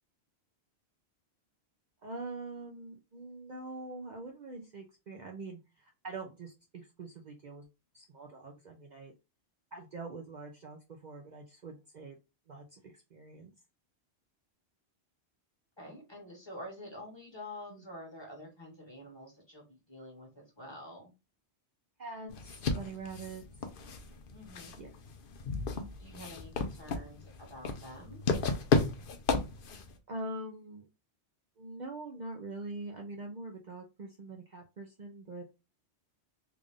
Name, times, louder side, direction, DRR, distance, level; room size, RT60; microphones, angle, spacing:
voice 1, 2.0-7.7 7.9-9.1 9.7-12.2 12.5-13.5 17.7-17.8 22.0-23.4 24.8-24.9 25.7-25.9 30.1-30.9 31.6-35.4, right 2 dB, 50° right, 1 dB, 0.7 m, -44 dB
voice 2, 15.8-21.1 24.3-24.7 26.0-28.2, left 1 dB, 25° left, -1 dB, 1.4 m, -48 dB
sound 1, 22.3-30.0, left 4 dB, 60° left, 0.8 m, -34 dB
3.4 x 2.5 x 3.6 m, 0.27 s
omnidirectional pair, 1.1 m